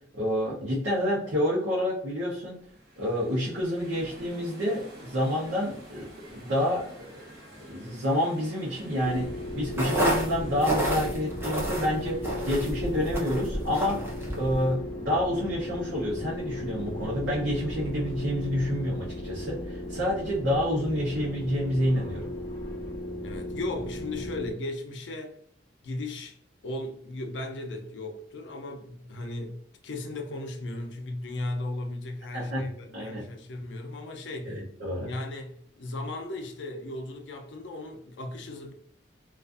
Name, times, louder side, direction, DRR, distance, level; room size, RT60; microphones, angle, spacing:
voice 1, 0.1-2.5 3.0-7.1 7.6-9.3 9.5-14.0 14.4-22.3 32.3-32.7 32.9-33.2 34.5-35.1, equal, 80° right, 0.7 m, -28 dB
sound 1, 2.4-13.7, equal, 55° right, 0.9 m, -49 dB
sound 2, 9.0-24.5, left 1 dB, 25° left, 0.5 m, -36 dB
sound 3, 9.7-14.7, right 1 dB, 15° right, 0.7 m, -31 dB
voice 2, 23.2-25.4 25.8-26.4 26.6-34.6 35.1-38.7, left 2 dB, 80° left, 0.4 m, -36 dB
2.4 x 2.3 x 2.3 m
head